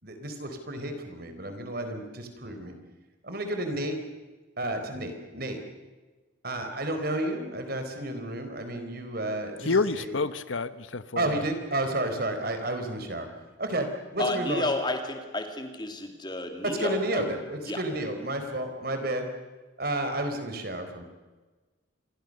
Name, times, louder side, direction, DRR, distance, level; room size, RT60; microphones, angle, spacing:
voice 1, 0.0-2.8 3.2-4.0 4.6-5.6 6.4-10.1 11.2-13.3 13.6-13.9 14.1-14.7 16.6-19.3 19.8-21.0, right 1 dB, 50° right, 6 dB, 4.3 m, -31 dB
voice 2, 9.6-11.4, left 4 dB, 75° left, 15 dB, 1.0 m, -28 dB
voice 3, 14.2-17.2 17.6-17.8, left 1 dB, 20° left, 5 dB, 2.8 m, -31 dB
27.5 x 22.5 x 6.6 m, 1.3 s
head